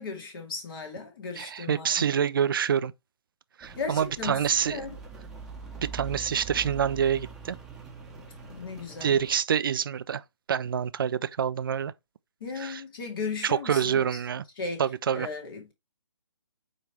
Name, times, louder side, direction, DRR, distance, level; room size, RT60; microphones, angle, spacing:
voice 1, 0.0-2.1 3.8-5.0 8.4-9.2 12.4-14.1 14.6-14.9 15.1-15.7, left 4 dB, 45° left, 2.2 m, -36 dB
voice 2, 1.4-2.9 3.6-4.8 5.8-7.6 9.0-10.2 10.5-11.9 12.6-12.8 13.4-14.4 14.8-15.3, right 8 dB, 45° right, 0.5 m, -26 dB
Rain, 3.6-9.4, right 4 dB, 5° right, 1.1 m, -43 dB
9.0 x 3.3 x 3.2 m
figure-of-eight pair, 140°, 16 cm